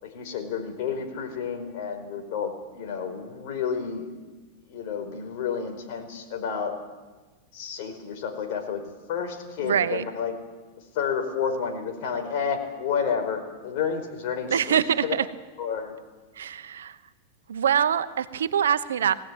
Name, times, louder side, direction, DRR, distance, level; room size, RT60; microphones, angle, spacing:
voice 1, 0.0-4.1 4.7-6.7 7.5-8.8 9.1-10.3 10.9-15.1 15.6-15.9, left 6 dB, 55° left, 5 dB, 4.8 m, -30 dB
voice 2, 9.6-10.0 14.5-15.2 16.4-17.0 17.5-19.2, right 8 dB, 90° right, 12 dB, 1.2 m, -24 dB
20.5 x 17.0 x 9.4 m, 1.3 s
hypercardioid pair, 125°, 0 cm